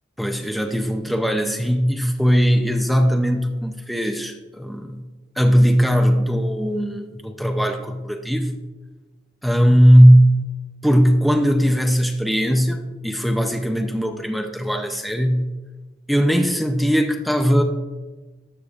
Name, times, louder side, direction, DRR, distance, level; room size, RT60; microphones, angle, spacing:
voice 1, 0.2-5.0 5.4-8.5 9.4-10.4 10.8-15.5 16.1-17.6, equal, ahead, 4 dB, 0.5 m, -18 dB
12.0 x 6.4 x 2.4 m, 1.2 s
head